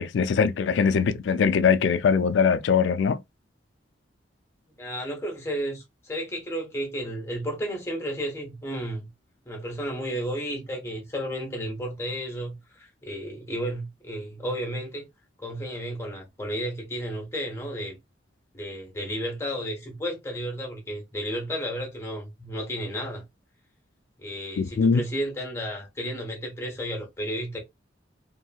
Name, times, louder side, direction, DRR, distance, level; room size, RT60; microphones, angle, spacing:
voice 1, 0.0-3.2 24.6-25.0, left 6 dB, 80° left, 0.4 m, -22 dB
voice 2, 4.8-9.1 9.4-15.1 15.4-18.0 18.5-23.2 24.2-27.6, equal, 15° left, 1.0 m, -32 dB
2.8 x 2.7 x 2.3 m
head